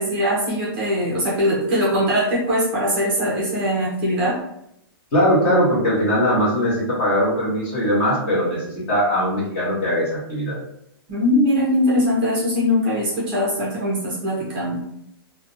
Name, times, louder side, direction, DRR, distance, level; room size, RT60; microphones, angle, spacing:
voice 1, 0.0-4.4 11.1-14.8, equal, 25° right, -5 dB, 0.5 m, -21 dB
voice 2, 5.1-10.6, equal, 30° left, -6 dB, 0.9 m, -20 dB
2.5 x 2.0 x 2.5 m, 0.79 s
hypercardioid pair, 175°, 13 cm